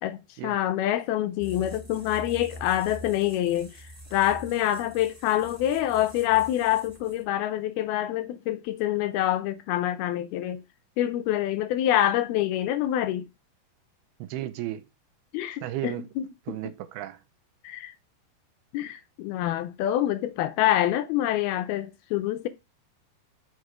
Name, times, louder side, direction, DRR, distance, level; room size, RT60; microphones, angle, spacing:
voice 1, 0.0-3.7 4.1-10.6 11.0-13.3 15.3-16.6 17.6-17.9 18.7-22.5, left 13 dB, 80° left, 2.4 m, -26 dB
sound 1, 1.4-7.4, equal, 10° right, 2.7 m, -45 dB
voice 2, 14.2-14.9 15.6-16.1 16.5-17.2, right 13 dB, 80° right, 2.5 m, -34 dB
8.0 x 6.6 x 4.8 m
omnidirectional pair, 4.7 m